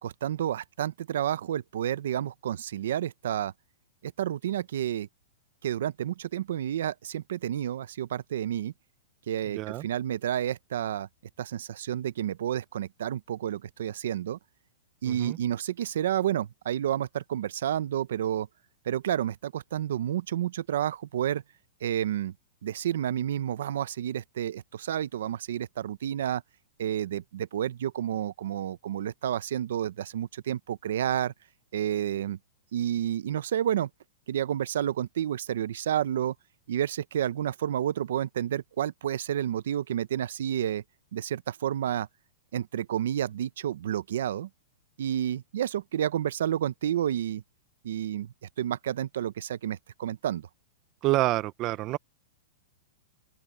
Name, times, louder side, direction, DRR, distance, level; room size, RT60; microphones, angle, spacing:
voice 1, 0.0-3.5 4.0-5.1 5.6-8.7 9.3-11.1 11.4-14.4 15.0-18.5 18.9-21.4 21.8-22.3 22.6-26.4 26.8-31.3 31.7-32.4 32.7-33.9 34.3-36.3 36.7-40.8 41.1-42.1 42.5-44.5 45.0-47.4 47.8-50.5, right 10 dB, 65° right, 0.7 m, -30 dB
voice 2, 9.5-9.9 15.1-15.4 51.0-52.0, right 17 dB, 25° right, 0.5 m, -27 dB
open air
supercardioid pair, 175°, 0 cm